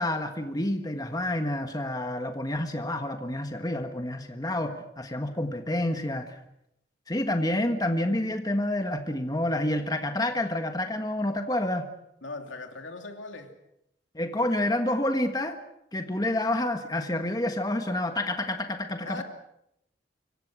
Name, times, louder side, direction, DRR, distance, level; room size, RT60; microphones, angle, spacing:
voice 1, 0.0-6.4 7.1-11.9 14.1-15.6 15.9-19.2, left 1 dB, 20° left, 6 dB, 1.5 m, -28 dB
voice 2, 12.2-13.5 19.0-19.2, left 3 dB, 80° left, 5 dB, 2.8 m, -39 dB
26.0 x 24.0 x 6.2 m, 0.79 s
head